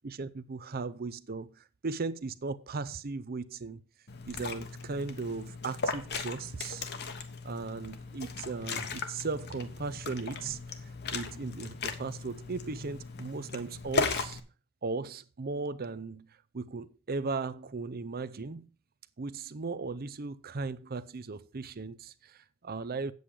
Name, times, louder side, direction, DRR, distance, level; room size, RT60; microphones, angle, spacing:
voice 1, 0.0-3.8 4.3-6.9 7.4-14.4 14.8-18.7 19.2-23.1, right 4 dB, 45° right, 0.6 m, -37 dB
Liquid, 4.1-14.4, left 4 dB, 50° left, 1.1 m, -37 dB
8.7 x 7.9 x 4.9 m
head